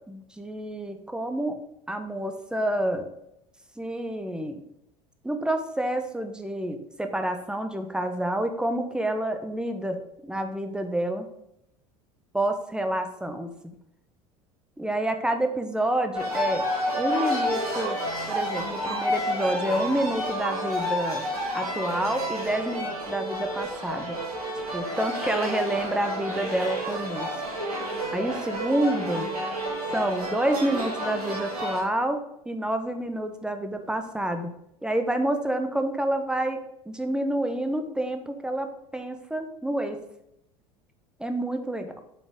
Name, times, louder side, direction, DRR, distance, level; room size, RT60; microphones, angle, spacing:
voice 1, 0.1-1.6 1.9-3.0 3.8-4.6 5.2-11.3 12.3-13.5 14.8-16.6 16.9-18.0 18.3-21.2 21.5-24.2 24.7-27.4 28.1-29.3 29.9-32.2 32.5-34.5 34.8-36.6 36.9-38.7 38.9-40.0 41.2-41.9, right 1 dB, 5° right, 6 dB, 0.9 m, -28 dB
sound 1, 16.1-31.8, equal, 80° right, 1.8 m, -30 dB
7.5 x 5.2 x 3.7 m, 0.81 s
figure-of-eight pair, 70°, 19 cm